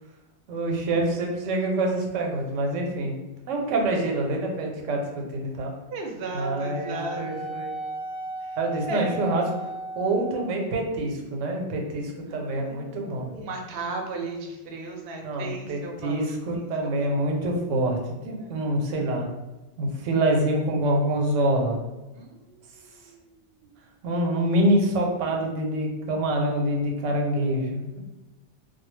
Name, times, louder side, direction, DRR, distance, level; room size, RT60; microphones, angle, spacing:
voice 1, 0.5-3.1 3.5-5.7 6.3-7.7 8.6-9.4 10.0-13.3 15.2-19.3 19.8-21.8 24.0-28.0, right 1 dB, 90° right, 1 dB, 0.9 m, -26 dB
voice 2, 5.9-7.6 8.4-8.6 8.9-9.3 12.3-17.1 18.4-18.5 22.1-23.8, right 3 dB, 65° right, 1 dB, 0.7 m, -37 dB
Wind instrument woodwind instrument, 6.4-10.5, right 1 dB, 5° left, 1.0 m, -36 dB
2.2 x 2.1 x 3.1 m, 1.1 s
omnidirectional pair, 1.2 m